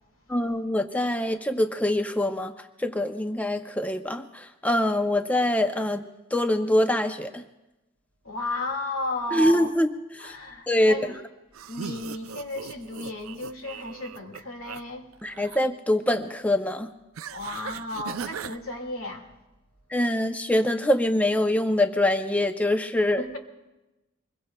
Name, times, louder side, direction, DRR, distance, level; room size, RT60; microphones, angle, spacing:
voice 1, 0.3-2.5 2.8-6.0 6.3-7.4 9.3-9.9 10.1-10.3 10.7-10.9 15.2-16.9 19.9-23.2, left 1 dB, 5° left, 0.4 m, -24 dB
voice 2, 8.2-9.7 10.2-11.1 11.7-15.1 17.3-19.3 23.2-23.4, left 2 dB, 85° left, 1.9 m, -33 dB
sound 1, 11.5-14.8 15.1-15.7 17.2-18.6, right 7 dB, 85° right, 0.4 m, -39 dB
25.0 x 21.5 x 2.2 m
head